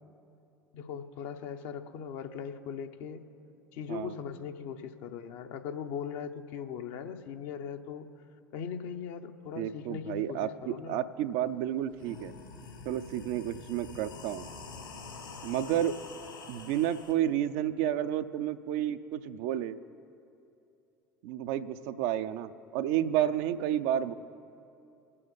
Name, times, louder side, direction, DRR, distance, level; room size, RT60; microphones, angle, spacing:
voice 1, 0.7-3.2 3.7-8.1 8.5-11.0, left 7 dB, 55° left, 6 dB, 0.8 m, -39 dB
voice 2, 9.6-12.3 12.8-14.5 15.4-16.0 16.5-19.8 21.2-24.1, right 11 dB, 55° right, 11 dB, 0.5 m, -31 dB
sound 1, 11.4-11.5 11.9-17.1, left 4 dB, 80° left, 2.2 m, -46 dB
22.0 x 7.6 x 4.0 m, 2.7 s
figure-of-eight pair, 65°, 11 cm